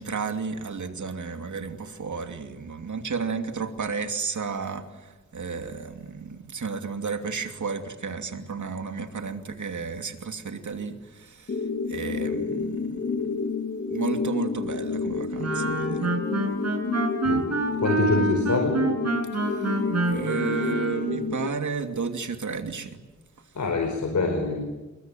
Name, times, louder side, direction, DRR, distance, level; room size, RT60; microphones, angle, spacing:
voice 1, 0.0-13.1 13.9-16.1 19.4-23.0, right 5 dB, 85° right, 6 dB, 2.8 m, -32 dB
sound 1, 11.5-21.5, left 4 dB, 50° left, 2.3 m, -30 dB
Wind instrument woodwind instrument, 15.4-21.1, right 2 dB, 60° right, 7.4 m, -27 dB
voice 2, 17.8-18.7 23.5-24.6, left 3 dB, 80° left, 4 dB, 5.0 m, -25 dB
29.0 x 22.5 x 9.2 m, 1.2 s
wide cardioid pair, 115°, 29 cm